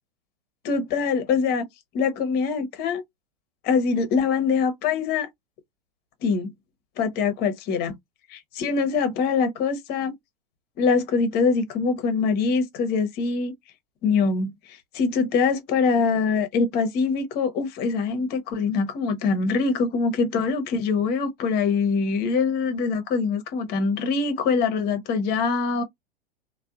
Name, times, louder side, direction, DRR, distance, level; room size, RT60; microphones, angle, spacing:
voice 1, 0.6-1.7 1.9-3.0 3.6-5.3 6.2-6.5 7.0-8.0 8.3-10.1 10.8-13.5 14.0-25.8, left 5 dB, 35° left, 0.7 m, -24 dB
2.6 x 2.1 x 2.4 m
figure-of-eight pair, 100°, 30 cm